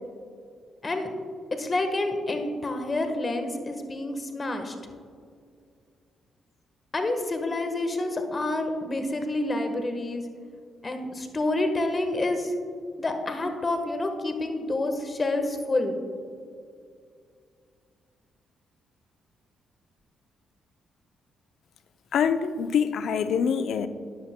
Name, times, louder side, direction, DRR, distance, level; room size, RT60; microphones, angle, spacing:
voice 1, 1.6-4.7 6.9-10.2 10.8-12.5 13.0-16.0, left 2 dB, 35° left, 5 dB, 1.2 m, -28 dB
voice 2, 22.1-23.9, left 7 dB, 70° left, 11 dB, 0.4 m, -25 dB
13.5 x 10.0 x 2.2 m, 2.2 s
supercardioid pair, 60°, 0 cm